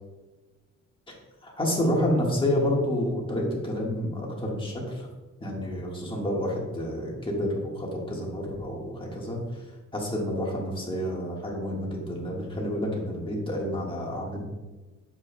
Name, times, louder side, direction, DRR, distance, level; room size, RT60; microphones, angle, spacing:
voice 1, 1.4-5.1 5.4-9.4 9.9-14.4, left 1 dB, 15° left, -3 dB, 1.5 m, -29 dB
9.3 x 7.1 x 2.2 m, 1.2 s
wide cardioid pair, 155°, 30 cm